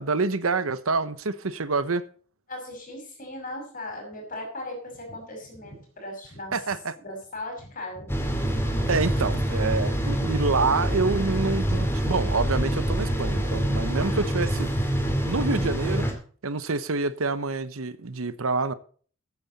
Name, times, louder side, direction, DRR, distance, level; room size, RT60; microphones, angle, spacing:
voice 1, 0.0-2.0 6.5-6.9 8.9-14.7 15.2-16.1 16.4-18.7, right 3 dB, 80° right, 1.0 m, -27 dB
voice 2, 2.5-6.6 7.0-8.2 8.5-8.6, left 1 dB, 40° left, 5.7 m, -38 dB
sound 1, 8.1-16.1, right 1 dB, 10° left, 2.4 m, -26 dB
14.0 x 9.7 x 4.2 m
head